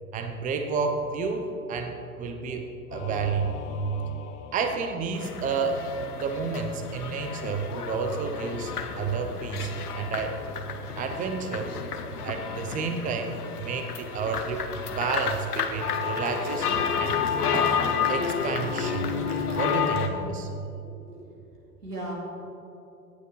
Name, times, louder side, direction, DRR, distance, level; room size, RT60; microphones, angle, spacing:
voice 1, 0.1-3.6 4.5-5.9 6.2-10.4 11.0-11.7 12.2-14.6 14.9-17.2 17.5-17.8 18.1-19.2 19.5-20.5, right 5 dB, 15° right, 5 dB, 0.7 m, -30 dB
Singing / Musical instrument, 2.9-5.8, left 5 dB, 20° left, 0.3 m, -42 dB
sound 1, 5.1-20.1, left 7 dB, 80° left, 1.0 m, -30 dB
sound 2, 15.7-20.0, right 3 dB, 60° right, 2.5 m, -42 dB
voice 2, 20.9-21.4 21.8-22.1, right 1 dB, 90° right, -2 dB, 2.5 m, -38 dB
17.0 x 8.9 x 3.3 m, 2.9 s
figure-of-eight pair, 95°, 45 cm